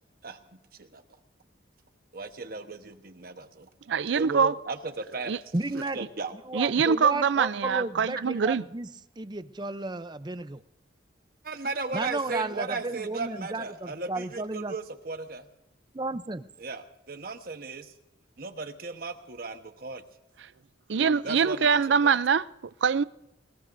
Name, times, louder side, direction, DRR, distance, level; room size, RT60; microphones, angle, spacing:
voice 1, 2.1-3.7 4.1-5.5 5.9-6.3 8.1-8.4 11.4-15.5 16.6-17.9 18.4-20.0 21.2-22.2, right 3 dB, 50° right, 1.1 m, -36 dB
voice 2, 3.9-4.5 5.3-5.4 6.5-8.6 20.9-22.5 22.8-23.0, right 6 dB, 70° right, 0.5 m, -23 dB
voice 3, 5.5-6.0 6.5-8.9 9.2-10.6 11.9-14.7 15.9-16.4, right 2 dB, 25° right, 0.6 m, -33 dB
21.0 x 20.5 x 2.6 m
head